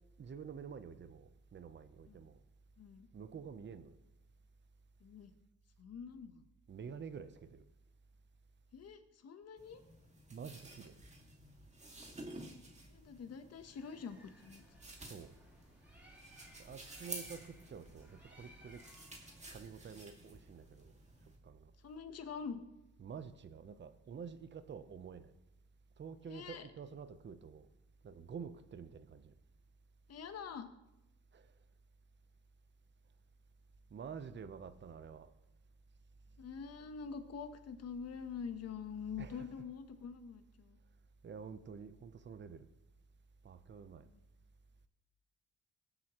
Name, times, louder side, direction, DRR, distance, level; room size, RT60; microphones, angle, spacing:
voice 1, 0.2-2.4 3.1-4.0 6.7-7.6 10.3-11.0 15.0-15.3 16.6-18.8 19.5-20.9 21.4-21.7 23.0-25.3 26.0-27.7 28.0-29.3 31.3-31.5 33.9-35.3 39.2-39.6 41.2-42.7 43.4-44.1, right 6 dB, 35° right, 12 dB, 0.8 m, -49 dB
voice 2, 2.8-3.1 5.0-5.3 5.8-6.4 8.7-9.8 12.9-14.6 21.8-22.6 26.3-26.7 30.1-30.7 36.4-40.8 44.1-44.2, left 6 dB, 55° left, 8 dB, 1.2 m, -46 dB
sound 1, 9.6-21.4, right 2 dB, 20° right, 2.2 m, -53 dB
Bird, 13.6-19.6, equal, 5° right, 3.8 m, -61 dB
19.0 x 7.8 x 3.1 m, 0.91 s
cardioid pair, 90°, 30 cm